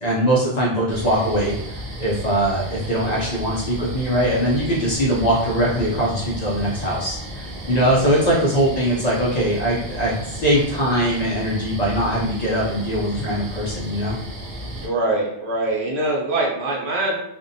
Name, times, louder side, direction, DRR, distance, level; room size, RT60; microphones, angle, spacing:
voice 1, 0.0-14.2, equal, 50° left, -5 dB, 0.6 m, -21 dB
sound 1, 0.9-14.9, right 1 dB, 65° right, 0.7 m, -34 dB
voice 2, 14.8-17.2, right 2 dB, 85° right, -2 dB, 1.0 m, -23 dB
2.6 x 2.1 x 2.5 m, 0.79 s
omnidirectional pair, 1.1 m